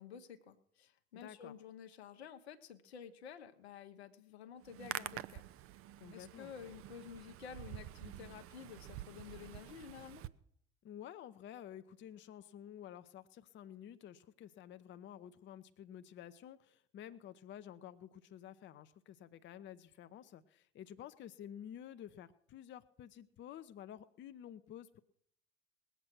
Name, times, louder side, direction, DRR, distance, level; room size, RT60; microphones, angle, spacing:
voice 1, 0.0-5.4 6.1-10.2, left 8 dB, 75° left, 7 dB, 1.0 m, -51 dB
voice 2, 1.1-1.5 6.0-6.5 10.8-25.0, left 10 dB, 35° left, 11 dB, 0.7 m, -51 dB
Hands, 4.6-10.3, right 14 dB, 45° right, 0.6 m, -48 dB
19.5 x 8.1 x 6.0 m, 0.68 s
figure-of-eight pair, 60°, 32 cm